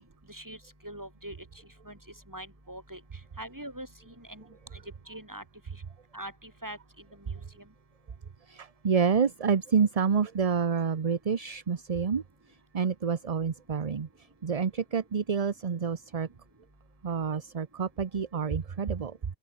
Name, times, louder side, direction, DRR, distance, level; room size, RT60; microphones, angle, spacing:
voice 1, 0.3-0.6 0.8-1.4 1.8-2.0 2.3-3.0 3.4-4.4 5.1-5.4 6.1-6.8 7.3-7.4, right 1 dB, 20° right, 4.7 m, -42 dB
voice 2, 8.5-12.2 12.7-14.1 14.4-16.3 17.0-19.2, right 6 dB, 40° right, 0.8 m, -28 dB
open air
omnidirectional pair, 1.1 m